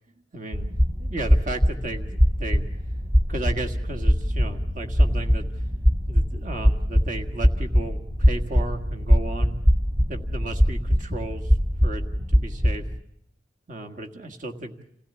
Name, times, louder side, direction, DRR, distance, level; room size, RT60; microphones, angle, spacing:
voice 1, 0.3-2.7 3.3-5.5 6.1-9.6 10.1-11.5 11.8-12.8 13.7-14.7, right 2 dB, 45° right, 3 dB, 1.7 m, -35 dB
sound 1, 0.5-13.0, equal, 25° right, 0.9 m, -22 dB
28.0 x 16.0 x 8.2 m, 0.75 s
head